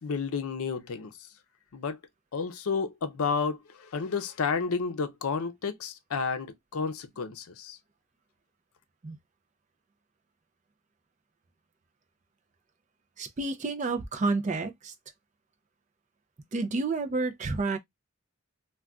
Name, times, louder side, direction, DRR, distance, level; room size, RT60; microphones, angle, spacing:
voice 1, 0.0-1.1 1.7-2.0 2.3-7.8, left 5 dB, 80° left, 0.5 m, -31 dB
voice 2, 13.2-14.9 16.5-17.8, right 3 dB, 35° right, 0.4 m, -30 dB
3.7 x 2.2 x 2.2 m
head